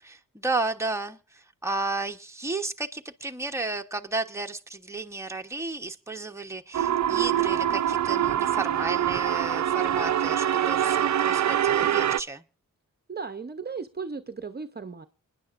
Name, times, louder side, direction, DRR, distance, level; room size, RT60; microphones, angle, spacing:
voice 1, 0.0-12.4, right 2 dB, 10° right, 4 dB, 1.1 m, -33 dB
sound 1, 6.7-12.2, right 10 dB, 60° right, 0.5 m, -24 dB
voice 2, 13.1-15.1, right 5 dB, 30° right, 9 dB, 0.8 m, -36 dB
28.0 x 10.0 x 2.6 m, 0.34 s
wide cardioid pair, 90°, 32 cm